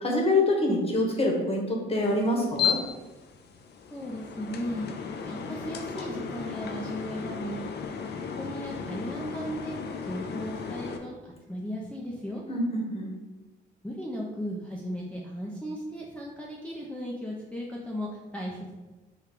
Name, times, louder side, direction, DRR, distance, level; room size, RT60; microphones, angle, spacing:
voice 1, 0.0-2.8 12.5-13.1, left 2 dB, 30° left, 0 dB, 1.0 m, -25 dB
sound 1, 1.9-11.0, left 7 dB, 55° left, 0.5 m, -35 dB
voice 2, 3.9-4.9 5.3-7.6 8.4-9.8 10.0-12.4 13.8-18.7, equal, 5° left, -4 dB, 0.5 m, -36 dB
3.7 x 2.3 x 4.4 m, 1.2 s
cardioid pair, 90°, 20 cm